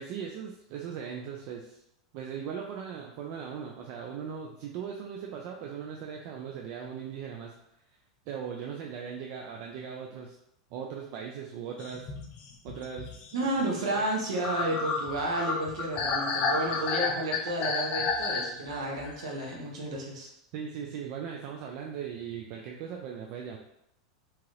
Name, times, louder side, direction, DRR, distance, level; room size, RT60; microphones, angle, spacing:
voice 1, 0.0-1.8 2.1-7.5 8.3-10.4 10.7-12.1 12.6-13.1 14.0-14.1 17.0-17.1 20.5-23.6, right 7 dB, 55° right, 0 dB, 0.4 m, -39 dB
sound 1, 11.8-19.5, left 4 dB, 40° left, 0.5 m, -32 dB
voice 2, 13.3-20.3, right 1 dB, 75° right, -1 dB, 0.9 m, -31 dB
2.9 x 2.4 x 3.1 m, 0.78 s
hypercardioid pair, 110°, 3 cm